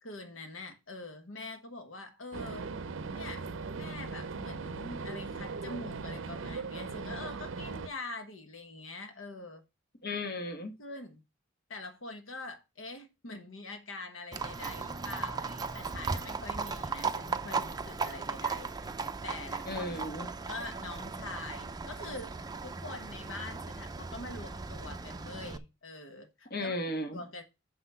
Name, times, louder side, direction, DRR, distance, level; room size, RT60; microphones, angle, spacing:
voice 1, 0.0-2.7 3.1-3.4 3.7-9.6 10.6-11.2 11.7-18.9 19.2-19.9 20.5-26.7 27.1-27.4, left 2 dB, 80° left, 1.4 m, -44 dB
sound 1, 2.3-7.9, right 4 dB, 70° right, 0.6 m, -39 dB
voice 2, 10.0-10.7 19.6-20.3 26.5-27.2, left 1 dB, 50° left, 1.3 m, -35 dB
Livestock farm animals working animals, 14.3-25.6, right 4 dB, 20° right, 0.5 m, -37 dB
6.3 x 5.9 x 5.5 m
head